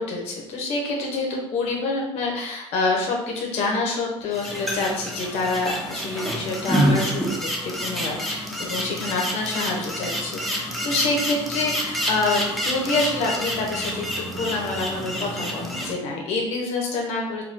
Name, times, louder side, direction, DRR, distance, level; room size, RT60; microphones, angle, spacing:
voice 1, 0.0-17.4, left 3 dB, 65° left, -1 dB, 0.8 m, -27 dB
sound 1, 4.3-15.9, equal, ahead, 0.5 m, -28 dB
4.7 x 2.2 x 3.6 m, 0.92 s
cardioid pair, 165°, 11 cm